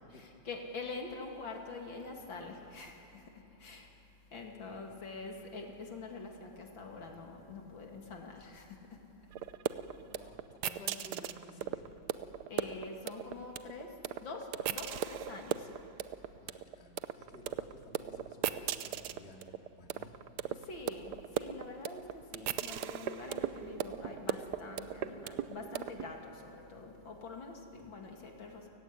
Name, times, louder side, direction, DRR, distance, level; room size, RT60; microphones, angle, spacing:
voice 1, 0.1-3.9 4.3-9.0 12.5-15.7 20.5-28.7, left 3 dB, 75° left, 2 dB, 3.1 m, -45 dB
sound 1, 9.3-26.1, right 10 dB, 65° right, 1.2 m, -37 dB
voice 2, 10.0-11.9 16.4-20.1 27.7-27.8, left 1 dB, 30° left, 1 dB, 2.6 m, -54 dB
30.0 x 16.0 x 9.9 m, 3.0 s
omnidirectional pair, 2.1 m